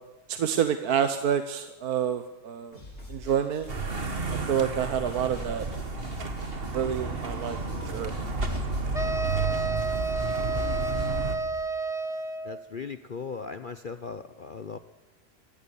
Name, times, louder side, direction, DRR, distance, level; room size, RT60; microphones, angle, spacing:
voice 1, 0.3-2.8 3.1-3.7 4.5-5.6 6.7-7.6 7.9-8.1, right 8 dB, 65° right, 9 dB, 1.4 m, -27 dB
sound 1, 2.7-11.1, left 1 dB, 35° left, 7.9 m, -46 dB
sound 2, 3.7-11.4, right 3 dB, 35° right, 1.8 m, -31 dB
sound 3, 8.9-12.6, right 3 dB, 5° right, 0.6 m, -30 dB
voice 2, 12.4-14.8, left 5 dB, 60° left, 11 dB, 0.5 m, -38 dB
23.5 x 16.0 x 7.1 m, 1.1 s
omnidirectional pair, 1.9 m